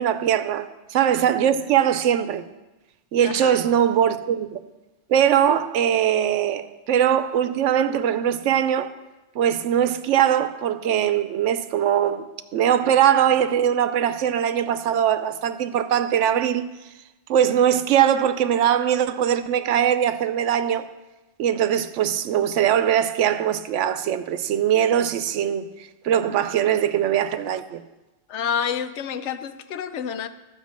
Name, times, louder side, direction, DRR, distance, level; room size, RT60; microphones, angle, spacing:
voice 1, 0.0-2.4 3.1-4.6 5.1-8.9 9.3-12.3 12.5-16.7 17.3-20.9 21.4-25.7 26.0-27.8, right 9 dB, 85° right, 0.9 m, -21 dB
voice 2, 3.2-3.6 28.3-30.3, left 7 dB, 75° left, 0.9 m, -28 dB
12.5 x 5.2 x 7.3 m
omnidirectional pair, 1.2 m